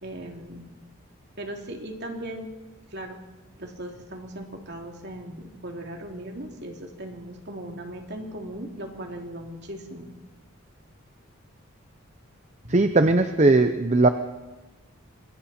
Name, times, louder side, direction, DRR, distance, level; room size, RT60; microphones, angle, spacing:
voice 1, 0.0-0.7 1.4-2.5 2.9-3.2 3.6-10.1 12.6-12.8, right 1 dB, 50° right, 2 dB, 2.9 m, -38 dB
voice 2, 12.7-14.1, right 2 dB, 35° right, 8 dB, 0.7 m, -19 dB
26.0 x 23.5 x 4.4 m, 1.1 s
head